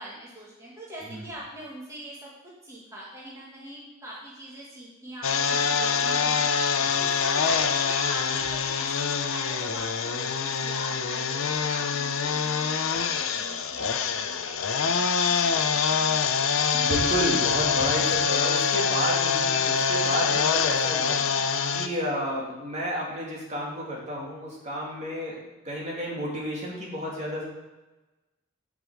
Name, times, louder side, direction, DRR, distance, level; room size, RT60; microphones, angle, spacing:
voice 1, 0.0-6.4 6.8-15.1 15.4-16.5 19.4-20.3 21.2-21.6, right 1 dB, 15° right, -6 dB, 2.2 m, -42 dB
sound 1, 5.2-21.9, left 6 dB, 80° left, 0.7 m, -25 dB
voice 2, 16.7-21.2 21.7-25.4 25.6-27.4, equal, 35° right, -3 dB, 2.6 m, -31 dB
8.3 x 6.1 x 7.6 m, 1.1 s
head